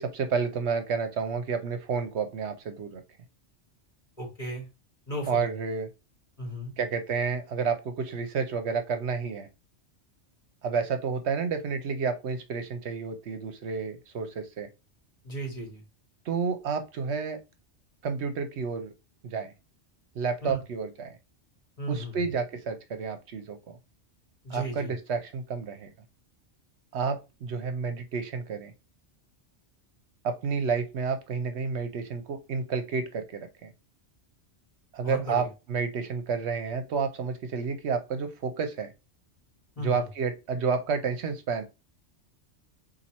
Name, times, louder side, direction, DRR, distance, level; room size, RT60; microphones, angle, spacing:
voice 1, 0.0-3.0 5.3-5.9 6.8-9.5 10.6-14.7 16.3-17.4 18.0-18.9 19.2-19.5 20.2-21.2 21.9-23.8 24.5-25.9 26.9-28.7 30.2-33.7 34.9-38.9 39.8-41.6, right 5 dB, 70° right, 8 dB, 0.9 m, -30 dB
voice 2, 4.2-4.7 5.1-5.5 6.4-6.7 15.2-15.8 20.4-20.6 21.8-22.2 24.4-24.9 35.0-35.5 39.8-40.0, right 1 dB, 30° left, -1 dB, 1.9 m, -35 dB
4.2 x 2.7 x 4.2 m, 0.27 s
omnidirectional pair, 1.2 m